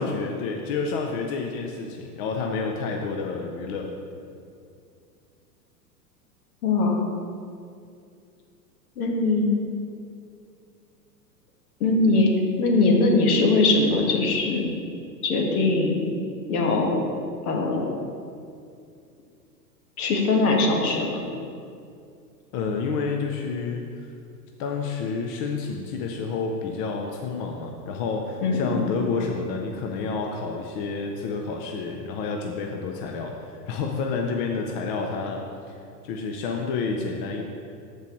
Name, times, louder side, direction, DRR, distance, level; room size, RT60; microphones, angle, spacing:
voice 1, 0.0-3.9 22.5-24.1 24.6-35.5 36.0-37.4, left 4 dB, 35° left, 2 dB, 0.6 m, -29 dB
voice 2, 6.6-7.0 9.0-9.5 11.8-12.3 12.6-14.7 15.2-16.0 16.5-17.0 17.4-17.9 20.0-21.2 28.4-28.8, left 3 dB, 60° left, 1 dB, 1.6 m, -21 dB
13.5 x 4.6 x 3.1 m, 2.4 s
hypercardioid pair, 105°, 50 cm